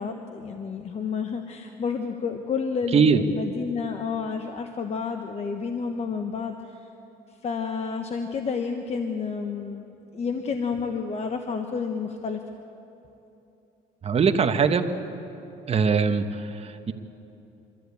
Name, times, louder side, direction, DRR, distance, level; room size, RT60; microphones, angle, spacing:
voice 1, 0.0-6.9 7.4-12.4, left 5 dB, 40° left, 5 dB, 1.1 m, -30 dB
voice 2, 2.9-3.2 14.0-14.9 15.7-16.9, right 6 dB, 35° right, 7 dB, 1.2 m, -21 dB
24.0 x 14.0 x 8.5 m, 2.9 s
cardioid pair, 110°, 17 cm